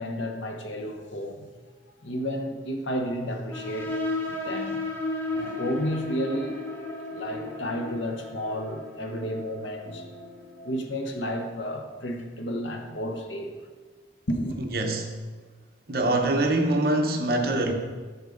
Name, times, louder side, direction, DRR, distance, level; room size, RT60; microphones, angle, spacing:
voice 1, 0.0-1.5 1.9-4.0 4.2-4.8 5.3-6.6 7.1-10.1 10.6-13.6 14.3-14.6, equal, 85° left, 4 dB, 1.0 m, -32 dB
sound 1, 3.5-10.8, left 2 dB, 10° left, 0.7 m, -34 dB
sound 2, 5.3-12.2, left 3 dB, 65° right, 1.3 m, -44 dB
voice 2, 14.7-15.1 15.9-17.7, right 2 dB, 50° right, 3 dB, 0.9 m, -24 dB
8.0 x 6.4 x 3.9 m, 1.4 s
head